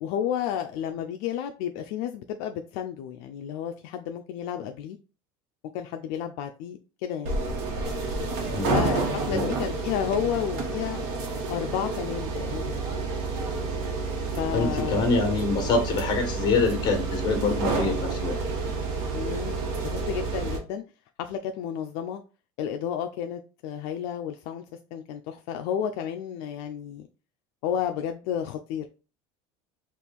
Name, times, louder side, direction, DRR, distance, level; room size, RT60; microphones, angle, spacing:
voice 1, 0.0-5.0 5.7-7.3 8.7-11.0 11.5-13.3 14.3-15.2 19.1-20.8 21.2-22.2 22.6-24.6 24.9-27.1 27.6-28.9, left 9 dB, 70° left, 5 dB, 0.4 m, -32 dB
sound 1, 7.3-20.6, right 3 dB, 70° right, 1.2 m, -29 dB
voice 2, 14.5-18.3, left 4 dB, 35° left, 4 dB, 1.3 m, -25 dB
4.4 x 2.5 x 3.5 m, 0.34 s
cardioid pair, 145°, 12 cm